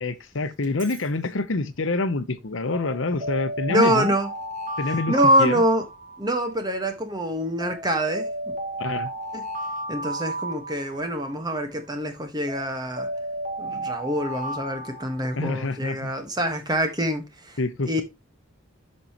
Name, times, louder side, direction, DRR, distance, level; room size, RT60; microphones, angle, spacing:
voice 1, 0.0-4.1 4.8-5.6 8.8-9.1 15.3-16.1 17.6-18.0, left 3 dB, 65° left, 0.9 m, -27 dB
Alarm, 0.6-1.0 2.7-6.5 7.6-11.4 12.5-15.7, right 1 dB, 40° right, 1.7 m, -33 dB
voice 2, 3.7-4.3 5.1-5.8 6.2-8.3 9.3-9.4 9.9-13.1 13.6-17.6 17.8-18.0, equal, 20° right, 1.4 m, -25 dB
10.5 x 5.4 x 3.0 m
head